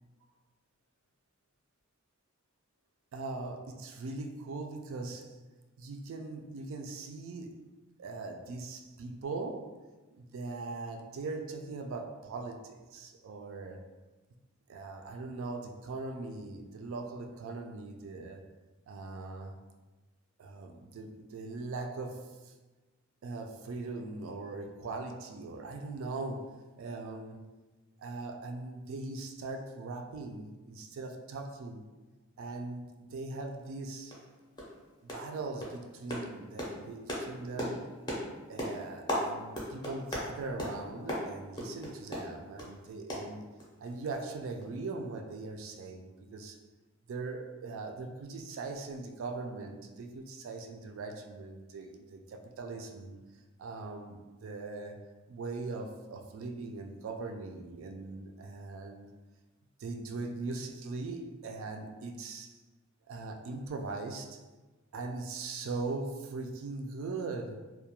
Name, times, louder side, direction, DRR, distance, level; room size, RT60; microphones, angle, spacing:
voice 1, 3.1-5.4 5.8-7.7 8.0-9.9 10.2-13.8 14.7-18.4 18.9-19.6 20.4-22.5 23.2-27.4 28.0-31.9 32.4-34.2 35.0-37.8 38.5-43.4 43.8-46.6 47.1-59.1 59.8-62.6 63.1-64.4 64.9-67.7, right 3 dB, 65° right, 4 dB, 0.3 m, -40 dB
sound 1, 33.6-33.7 34.1-34.3 34.6-34.8 35.1-35.3 35.6-42.7 43.1-43.9 44.1-44.3 44.6-44.7, equal, 20° left, 0.5 m, -37 dB
2.3 x 2.1 x 2.8 m, 1.2 s
head